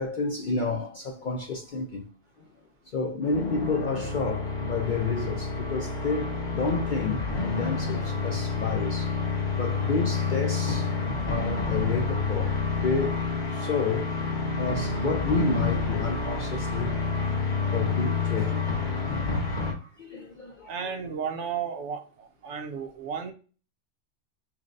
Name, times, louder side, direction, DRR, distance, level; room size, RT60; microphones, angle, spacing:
voice 1, 0.0-2.1 2.9-9.1 9.5-10.9 11.3-14.1 14.6-16.9 17.7-18.6 19.0-19.3 20.0-20.8 22.5-22.6, left 4 dB, 60° left, 0.5 m, -30 dB
sound 1, 3.2-19.7, left 4 dB, 35° left, 1.5 m, -29 dB
voice 2, 20.7-22.0 22.4-23.3, right 7 dB, 70° right, 1.0 m, -33 dB
5.7 x 2.2 x 2.5 m
omnidirectional pair, 1.3 m